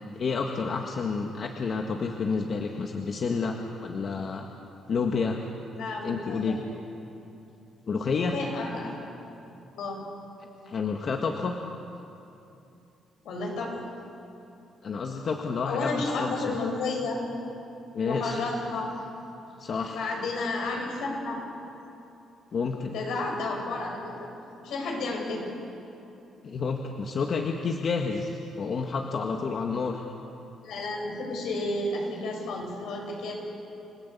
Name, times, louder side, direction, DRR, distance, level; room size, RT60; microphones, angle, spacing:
voice 1, 0.2-4.5 4.9-5.4 6.0-6.6 7.9-8.4 10.7-11.6 14.8-16.5 17.9-18.4 19.6-20.1 22.5-22.9 26.4-30.0, left 4 dB, 50° left, 2 dB, 1.7 m, -29 dB
voice 2, 5.7-6.6 8.1-9.1 9.7-10.0 13.2-13.9 15.6-17.2 18.0-18.9 19.9-21.4 22.8-24.3 24.6-25.5 30.6-33.3, left 2 dB, 80° left, 0 dB, 7.2 m, -32 dB
30.0 x 17.5 x 8.5 m, 2.8 s
cardioid pair, 90°, 0 cm